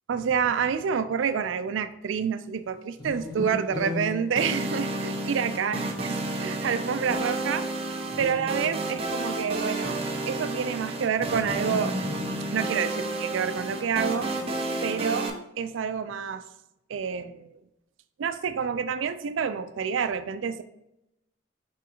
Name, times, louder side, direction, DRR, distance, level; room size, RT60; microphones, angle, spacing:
voice 1, 0.1-7.7 8.2-10.0 10.3-12.0 12.5-14.3 14.8-15.3 15.6-16.4 16.9-17.6 18.2-20.6, right 7 dB, 85° right, 11 dB, 0.4 m, -28 dB
sound 1, 3.0-5.3 8.0-9.3 11.2-13.1, left 2 dB, 20° left, 0.5 m, -37 dB
sound 2, 4.4-15.3, right 2 dB, 30° right, 0.6 m, -31 dB
5.0 x 3.6 x 2.9 m, 0.85 s
head